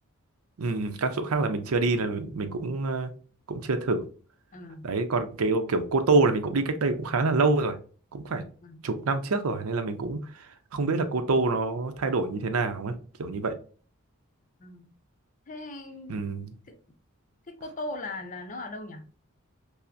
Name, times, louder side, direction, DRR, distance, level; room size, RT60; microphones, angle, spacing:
voice 1, 0.6-3.1 3.5-4.0 4.8-7.8 8.1-8.4 8.8-10.5 10.7-13.5 16.1-16.5, right 3 dB, 90° right, 0.6 m, -26 dB
voice 2, 4.5-4.9 8.6-8.8 14.6-14.9 15.5-16.2 16.7-16.8 17.5-19.0, left 2 dB, 35° left, 0.5 m, -38 dB
5.6 x 2.0 x 2.5 m
head